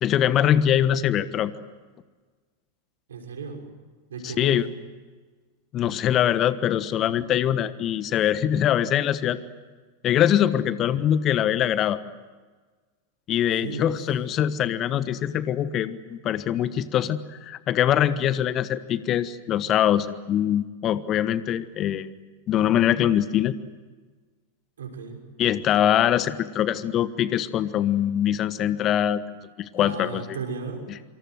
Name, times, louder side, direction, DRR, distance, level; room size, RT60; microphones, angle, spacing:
voice 1, 0.0-1.5 4.2-4.7 5.7-9.4 10.0-12.0 13.3-22.1 22.5-23.5 25.4-29.2 29.6-30.2, left 10 dB, 30° left, 14 dB, 1.3 m, -23 dB
voice 2, 3.1-3.6 4.1-4.6 7.0-7.1 13.6-13.9 24.8-25.2 29.8-31.0, right 4 dB, 65° right, 3 dB, 6.2 m, -35 dB
27.0 x 26.5 x 7.9 m, 1.4 s
figure-of-eight pair, 90°, 0 cm